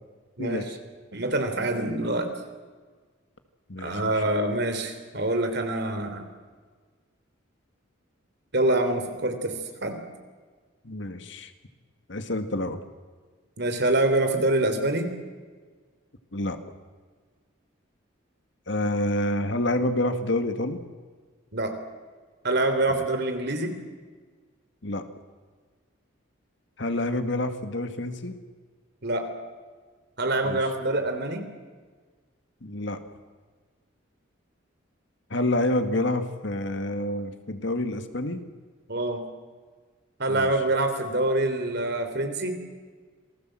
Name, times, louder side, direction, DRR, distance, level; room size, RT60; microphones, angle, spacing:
voice 1, 0.4-0.7 1.1-2.3 3.8-6.3 8.5-10.0 13.6-15.1 21.5-21.8 22.4-23.7 29.0-29.3 30.2-31.4 38.9-39.2 40.2-42.6, right 2 dB, 55° right, 7 dB, 3.3 m, -25 dB
voice 2, 3.7-4.1 10.8-11.5 12.1-12.8 16.3-16.6 18.7-20.8 22.9-23.0 24.8-25.0 26.8-28.4 30.4-30.6 32.6-33.0 35.3-38.4 40.3-40.5, left 1 dB, 60° left, 8 dB, 1.9 m, -28 dB
27.5 x 18.5 x 7.7 m, 1.5 s
head